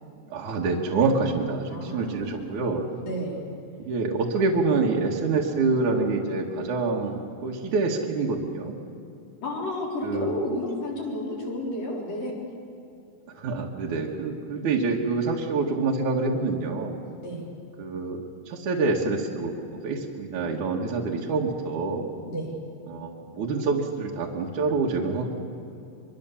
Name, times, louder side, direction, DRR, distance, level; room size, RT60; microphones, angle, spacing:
voice 1, 0.3-2.8 3.8-8.7 10.0-10.3 13.4-17.0 17.8-18.2 18.5-22.1 22.9-25.4, right 3 dB, 55° right, -2 dB, 2.6 m, -26 dB
voice 2, 1.7-3.4 4.1-4.2 9.4-12.3 17.2-17.5 22.3-22.5, left 1 dB, 55° left, -3 dB, 5.7 m, -32 dB
24.5 x 24.0 x 7.1 m, 2.7 s
omnidirectional pair, 4.9 m